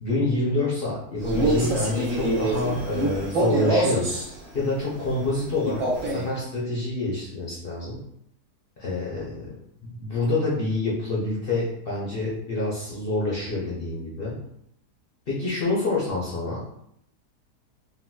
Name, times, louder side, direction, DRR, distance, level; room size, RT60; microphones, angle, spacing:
voice 1, 0.0-4.1 4.5-8.0 8.8-9.5 10.0-14.4 15.3-16.6, left 2 dB, 55° left, -6 dB, 0.6 m, -27 dB
Male speech man speaking, 1.2-4.3 5.6-6.3, right 1 dB, 65° right, 1.3 m, -25 dB
3.7 x 2.2 x 2.2 m, 0.74 s
omnidirectional pair, 1.8 m